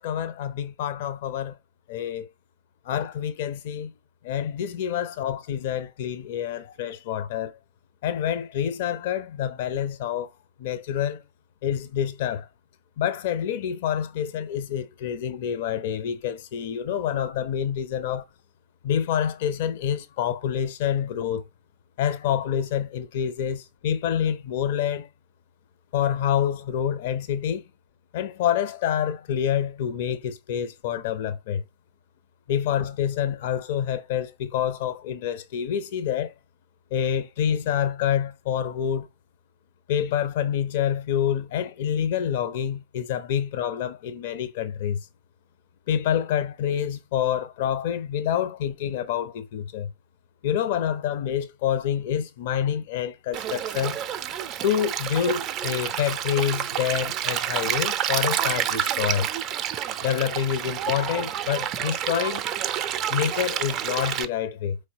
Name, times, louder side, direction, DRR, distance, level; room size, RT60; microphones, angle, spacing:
voice 1, 0.0-1.6 1.9-2.3 2.8-3.9 4.2-7.6 8.0-10.3 10.6-11.2 11.6-12.5 13.0-18.3 18.8-21.4 22.0-25.1 25.9-27.6 28.1-31.6 32.5-36.3 36.9-39.1 39.9-45.1 45.9-49.9 50.4-54.0 54.6-59.3 60.0-62.4 63.1-64.8, left 9 dB, 55° left, 0.5 m, -27 dB
Stream, 53.3-64.3, right 10 dB, 35° right, 0.4 m, -29 dB
4.3 x 3.2 x 2.7 m
figure-of-eight pair, 90°, 0 cm